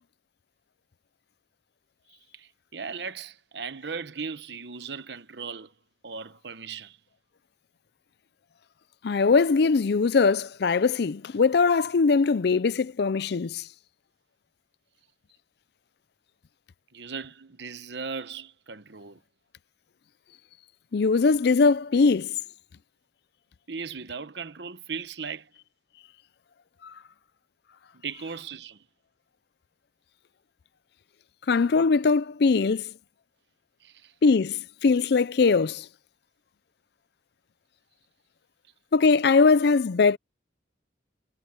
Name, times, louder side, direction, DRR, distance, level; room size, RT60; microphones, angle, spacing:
voice 1, 2.3-5.7 6.0-7.0 16.9-19.2 23.7-25.5 28.0-28.8 33.8-34.1, right 5 dB, 65° right, 1.0 m, -37 dB
voice 2, 9.0-13.6 20.9-22.3 31.5-32.8 34.2-35.8 38.9-40.2, left 4 dB, 60° left, 0.4 m, -21 dB
head